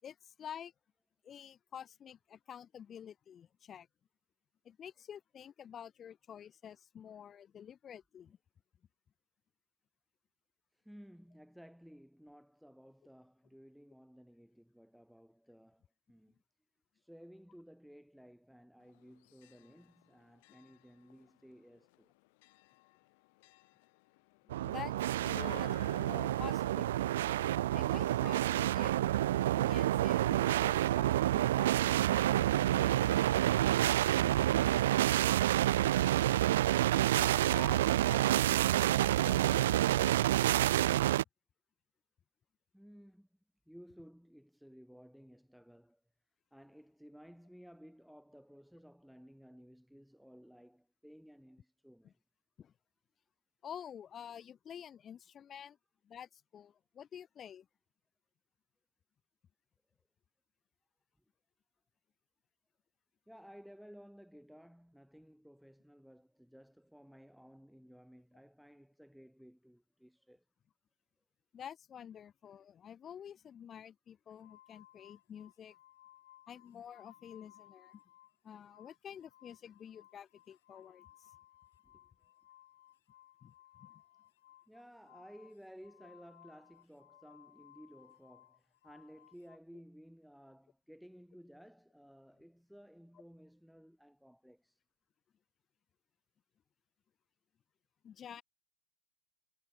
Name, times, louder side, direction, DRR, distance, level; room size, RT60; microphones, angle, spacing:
voice 1, 0.0-0.7 1.2-3.9 4.6-8.4 20.5-20.6 24.4-29.0 29.6-33.1 36.9-40.6 52.0-52.1 52.6-52.7 53.6-55.8 56.0-57.7 71.5-75.8 76.5-78.0 78.4-81.3 83.4-83.5 83.8-84.0 98.0-98.4, left 8 dB, 25° left, 4.8 m, -50 dB
voice 2, 10.7-16.4 16.9-22.1 42.7-43.3 43.7-46.0 46.5-52.2 63.3-70.4 81.8-82.0 84.7-94.8, equal, ahead, 2.3 m, -57 dB
Church bell, 18.8-33.9, left 26 dB, 55° left, 2.8 m, -58 dB
sound 1, 24.5-41.2, right 13 dB, 70° right, 0.5 m, -28 dB
sound 2, 74.4-78.4 78.6-89.6, left 13 dB, 70° left, 4.5 m, -62 dB
hypercardioid pair, 120°, 0 cm